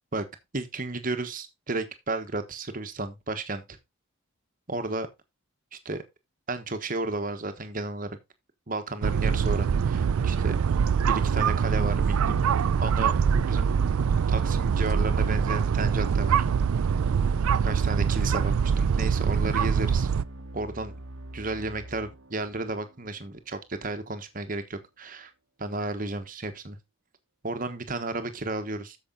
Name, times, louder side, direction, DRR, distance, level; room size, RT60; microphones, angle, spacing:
voice 1, 0.5-3.8 4.7-5.1 5.8-6.0 6.5-8.1 8.7-10.5 11.1-12.4 12.8-13.7 14.3-16.4 17.6-20.1 20.5-20.9 21.3-25.3 25.6-26.8 27.4-29.0, right 2 dB, 40° right, 1.2 m, -33 dB
sound 1, 9.0-20.2, right 6 dB, 85° right, 0.4 m, -24 dB
sound 2, 16.3-23.8, right 1 dB, 60° right, 1.0 m, -44 dB
8.6 x 7.0 x 3.9 m
head